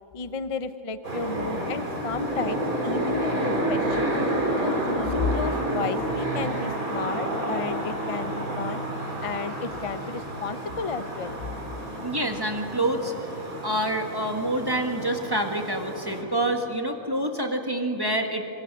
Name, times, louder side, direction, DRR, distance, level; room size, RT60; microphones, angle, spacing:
voice 1, 0.1-4.1 4.6-8.8 9.2-11.4, left 5 dB, 40° left, 11 dB, 0.5 m, -32 dB
sound 1, 1.0-16.2, right 1 dB, 75° right, 4.0 m, -30 dB
voice 2, 12.0-13.1 13.6-18.4, right 1 dB, 15° right, 3 dB, 1.6 m, -27 dB
25.5 x 23.0 x 6.1 m, 2.9 s
omnidirectional pair, 1.5 m